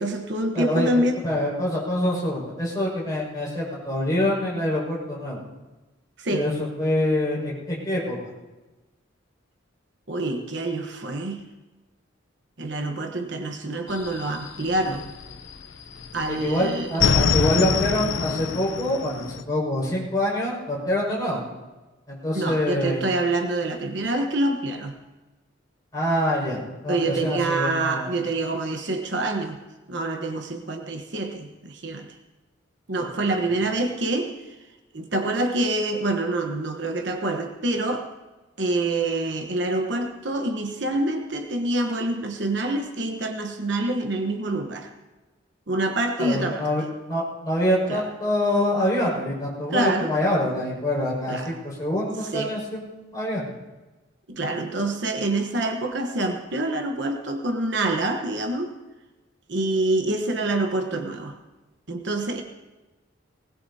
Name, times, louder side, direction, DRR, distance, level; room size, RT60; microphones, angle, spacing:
voice 1, 0.0-1.2 6.2-6.5 10.1-11.4 12.6-15.1 16.1-17.0 22.3-25.0 26.9-29.6 29.9-32.1 32.9-34.6 34.9-38.1 38.6-44.9 45.7-46.7 47.9-48.1 49.7-50.1 51.3-51.6 52.3-52.5 54.3-58.8 59.5-61.4 61.9-62.4, right 2 dB, 60° right, 4 dB, 1.1 m, -26 dB
voice 2, 0.5-5.4 6.3-6.5 6.8-8.2 16.3-21.4 22.1-23.0 25.9-28.1 33.0-33.1 46.2-46.8 47.1-53.5, left 1 dB, 20° left, -7 dB, 5.8 m, -25 dB
sound 1, 13.9-15.6 15.9-19.4, left 5 dB, 70° left, 0.6 m, -24 dB
20.0 x 19.5 x 2.8 m, 1.1 s
head